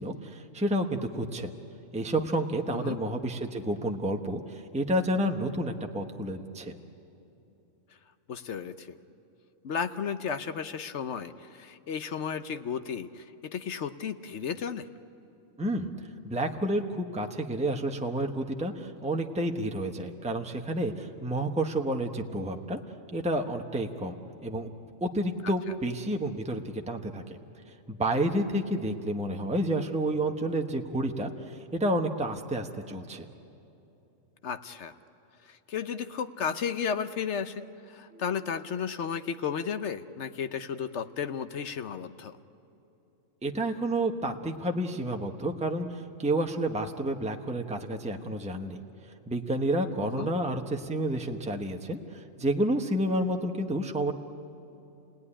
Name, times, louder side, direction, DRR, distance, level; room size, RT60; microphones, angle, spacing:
voice 1, 0.0-1.5 1.9-6.7 15.6-15.9 16.2-22.8 23.1-24.2 24.4-24.7 25.0-27.4 27.9-33.3 38.1-38.2 43.4-48.8 49.3-54.1, right 1 dB, 5° right, 3 dB, 1.0 m, -30 dB
voice 2, 2.7-3.0 8.3-9.0 9.6-14.9 25.4-25.5 34.4-34.9 35.4-42.4 50.0-50.3, left 7 dB, 60° left, 10 dB, 1.0 m, -34 dB
29.5 x 18.5 x 9.9 m, 2.9 s
omnidirectional pair, 1.4 m